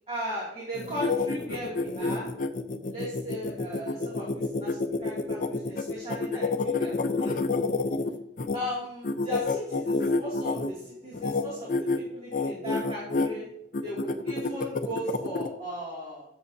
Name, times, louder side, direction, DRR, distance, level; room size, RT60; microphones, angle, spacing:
voice 1, 0.1-2.3 2.9-7.4 8.5-13.5 13.8-16.2, equal, 35° right, -6 dB, 2.5 m, -37 dB
sound 1, 0.7-8.6 9.0-10.7 11.1-11.4 11.7-12.0 12.3-13.3 13.7-15.5, left 3 dB, 50° left, 0.6 m, -28 dB
12.5 x 6.9 x 2.8 m, 0.74 s
head